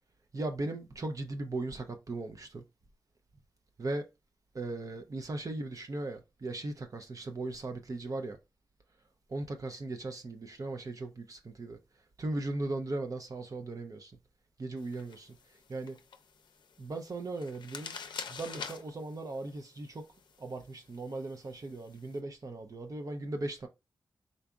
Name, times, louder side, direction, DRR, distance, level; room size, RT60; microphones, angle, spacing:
voice 1, 0.3-2.6 3.8-4.1 4.5-8.4 9.3-11.8 12.2-14.1 14.6-15.4 15.7-16.0 16.8-18.0 18.3-20.0 20.4-23.7, right 2 dB, 50° right, 0.5 m, -38 dB
sound 1, 14.8-22.2, left 6 dB, 90° left, 0.5 m, -48 dB
3.9 x 2.4 x 3.4 m
cardioid pair, 60°, 8 cm